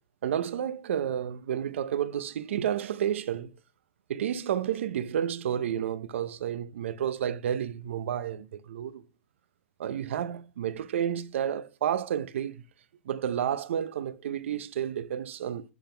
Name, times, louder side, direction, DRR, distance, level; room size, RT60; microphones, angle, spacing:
voice 1, 0.2-3.6 4.1-9.0 9.8-12.6 13.1-15.7, right 9 dB, 75° right, 0.7 m, -31 dB
10.5 x 3.9 x 3.4 m
hypercardioid pair, 125°, 7 cm